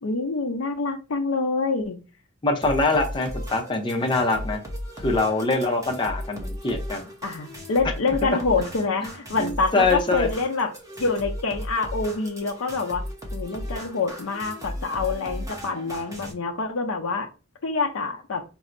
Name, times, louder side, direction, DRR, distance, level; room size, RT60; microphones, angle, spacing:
voice 1, 0.0-2.0 7.2-10.7 11.0-13.0 13.3-17.3 17.6-18.4, left 4 dB, 80° left, 5 dB, 0.6 m, -26 dB
voice 2, 2.4-4.6 5.0-7.1 9.4-10.3, left 3 dB, 25° left, 2 dB, 0.5 m, -24 dB
sound 1, 2.6-16.3, equal, 15° right, 0.7 m, -36 dB
4.3 x 2.0 x 2.5 m, 0.32 s
head